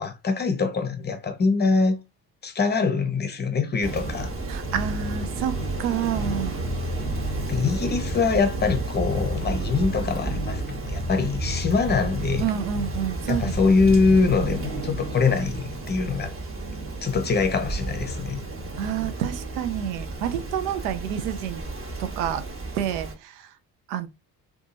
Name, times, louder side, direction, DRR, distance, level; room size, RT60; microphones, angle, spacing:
voice 1, 0.0-2.0 2.4-4.3 7.5-12.5 13.2-16.3 17.0-18.4, left 4 dB, 20° left, 0.7 m, -23 dB
Rain, 3.8-23.1, right 2 dB, 25° right, 1.0 m, -33 dB
voice 2, 4.5-5.5 5.8-6.6 12.4-13.5 18.8-21.6 22.2-22.4 22.8-23.5 23.9-24.1, right 9 dB, 75° right, 0.6 m, -28 dB
Bass guitar, 4.6-5.9 6.1-8.3 8.5-10.7 10.9-13.1 13.3-14.2, equal, 55° right, 1.2 m, -32 dB
2.7 x 2.4 x 2.5 m
hypercardioid pair, 50°, 48 cm